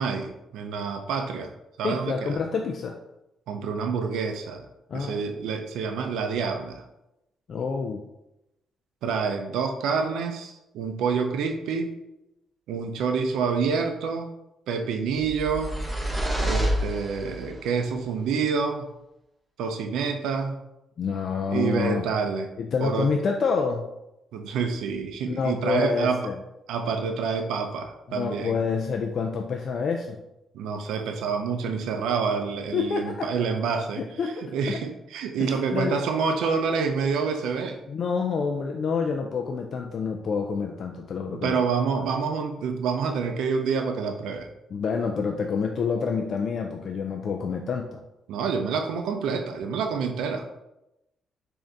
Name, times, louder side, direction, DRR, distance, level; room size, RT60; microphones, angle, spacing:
voice 1, 0.0-1.5 1.8-2.4 3.5-4.7 4.9-6.8 9.0-11.9 12.7-14.3 14.7-15.7 16.4-18.9 19.6-20.5 21.5-22.5 22.8-23.1 24.3-26.2 26.7-28.6 30.5-37.8 41.3-44.5 48.3-50.5, right 5 dB, 85° right, 4 dB, 0.4 m, -27 dB
voice 2, 1.8-3.0 4.9-5.2 7.5-8.0 21.0-22.0 22.6-23.9 25.3-26.3 28.1-30.2 32.7-33.3 34.0-34.3 34.7-34.8 35.4-35.9 37.9-41.6 44.7-48.0, left 5 dB, 55° left, 3 dB, 0.3 m, -27 dB
sound 1, 15.2-17.6, equal, 10° right, 0.8 m, -28 dB
3.8 x 2.5 x 3.4 m, 0.91 s
cardioid pair, 90°, 0 cm